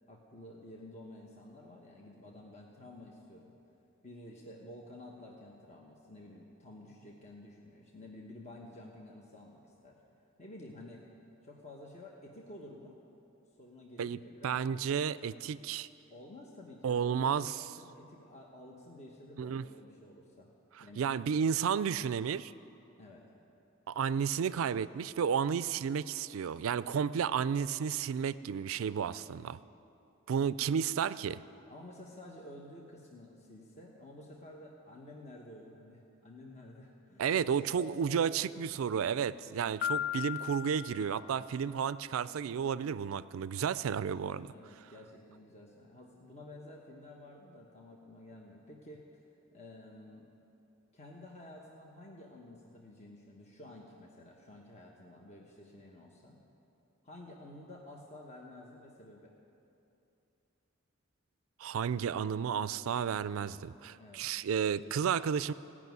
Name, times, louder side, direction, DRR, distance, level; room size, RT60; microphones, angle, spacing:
voice 1, 0.1-3.6 4.0-10.0 10.4-11.0 11.4-13.0 13.6-14.6 16.1-17.4 17.8-20.5 20.8-21.0 23.0-23.2 31.7-38.5 44.5-49.1 49.5-50.3 50.9-56.4 57.0-59.3 64.0-64.3, left 1 dB, 35° left, -1 dB, 1.1 m, -51 dB
voice 2, 14.0-15.9 16.8-17.5 19.4-19.6 21.0-22.5 23.9-29.6 30.3-31.4 37.2-44.5 61.6-65.5, right 7 dB, 80° right, 17 dB, 0.4 m, -32 dB
Piano, 39.8-41.7, left 10 dB, 50° left, 0.4 m, -37 dB
16.0 x 6.1 x 9.3 m, 2.8 s
head